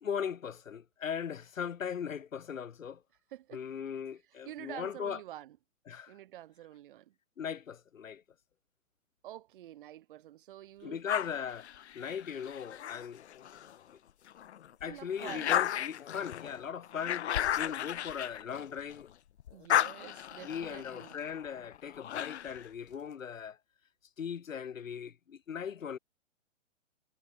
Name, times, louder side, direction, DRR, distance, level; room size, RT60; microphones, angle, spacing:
voice 1, 0.0-3.0 3.5-5.2 5.9-6.2 7.4-8.2 10.8-11.7 11.9-13.2 13.9-14.0 14.8-17.3 17.6-19.1 20.4-23.6 24.2-26.0, left 7 dB, 85° left, 2.3 m, -38 dB
voice 2, 3.3-3.6 4.3-5.6 6.1-7.1 9.2-11.0 14.9-15.6 19.5-21.2, right 13 dB, 40° right, 2.0 m, -48 dB
sound 1, 11.1-13.8 14.3-19.1 19.4-22.7, left 10 dB, 60° left, 1.2 m, -35 dB
hypercardioid pair, 160°, 39 cm